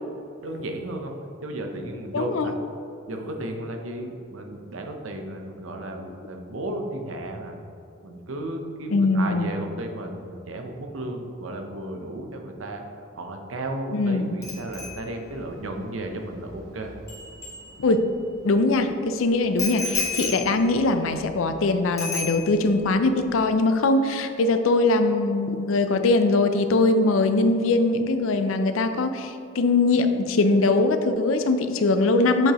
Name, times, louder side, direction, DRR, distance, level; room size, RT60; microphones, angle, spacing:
voice 1, 0.4-1.1 1.4-2.6 3.1-7.6 8.0-16.9, right 1 dB, 80° right, 3 dB, 0.7 m, -34 dB
voice 2, 2.1-2.5 8.9-9.5 13.9-14.3 17.8-18.1 18.4-32.5, left 2 dB, 85° left, 8 dB, 0.5 m, -21 dB
Bicycle bell, 14.4-18.2 19.6-21.6 22.0-22.8 23.1-23.4, left 4 dB, 15° left, 1.2 m, -34 dB
7.6 x 4.8 x 2.9 m, 2.7 s
head